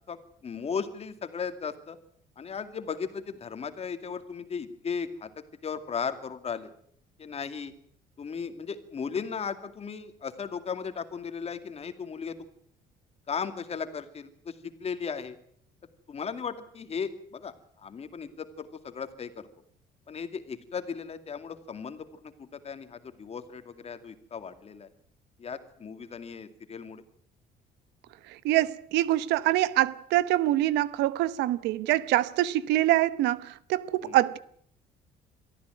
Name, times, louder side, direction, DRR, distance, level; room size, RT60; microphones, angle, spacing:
voice 1, 0.0-2.0 2.4-5.3 5.6-6.7 7.2-7.7 8.2-12.4 13.3-14.5 14.8-15.4 16.1-19.5 20.1-24.9 25.4-27.0 34.0-34.2, left 6 dB, 35° left, 2.4 m, -36 dB
voice 2, 28.3-34.4, right 15 dB, 90° right, 1.0 m, -25 dB
23.5 x 14.0 x 9.2 m
cardioid pair, 110°, 17 cm